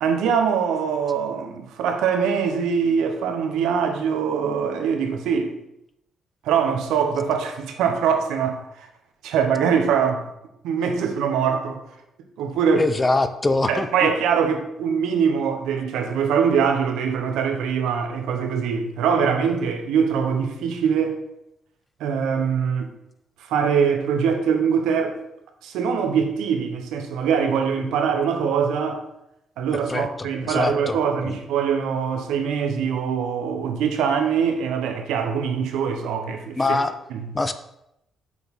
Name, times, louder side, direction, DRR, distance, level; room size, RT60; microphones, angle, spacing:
voice 1, 0.0-5.5 6.4-8.9 9.2-10.2 10.6-11.8 12.4-12.8 13.7-21.2 22.0-22.9 23.5-25.2 25.6-29.0 29.6-36.8 37.1-37.2, right 6 dB, 90° right, 1.0 m, -23 dB
voice 2, 12.8-14.1 29.9-31.4 36.6-37.0 37.3-37.5, left 2 dB, 20° left, 0.6 m, -24 dB
6.4 x 4.7 x 5.4 m
cardioid pair, 90°, 0 cm